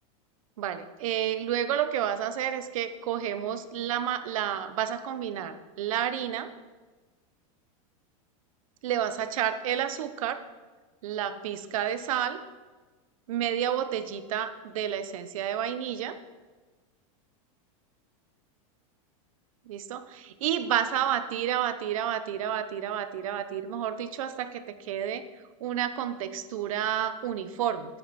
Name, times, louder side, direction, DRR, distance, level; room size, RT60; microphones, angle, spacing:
voice 1, 0.6-6.5 8.8-10.4 11.0-12.4 13.3-16.2 19.7-25.2 25.6-28.0, right 10 dB, 70° right, 11 dB, 1.0 m, -30 dB
11.0 x 10.0 x 4.3 m, 1.3 s
supercardioid pair, 165°, 18 cm